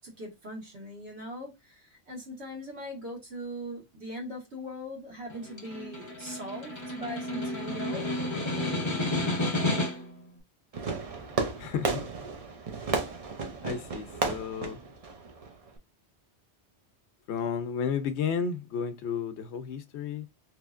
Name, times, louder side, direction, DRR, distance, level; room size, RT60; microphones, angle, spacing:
voice 1, 0.0-8.3, equal, 70° right, 1.8 m, -40 dB
Snare drum, 5.3-10.2, left 1 dB, 25° left, 1.0 m, -31 dB
Fireworks, 10.7-15.8, right 4 dB, 40° right, 0.6 m, -33 dB
voice 2, 11.6-12.0 13.6-14.8 17.3-20.3, left 7 dB, 80° left, 0.9 m, -32 dB
3.3 x 2.8 x 2.4 m
omnidirectional pair, 1.1 m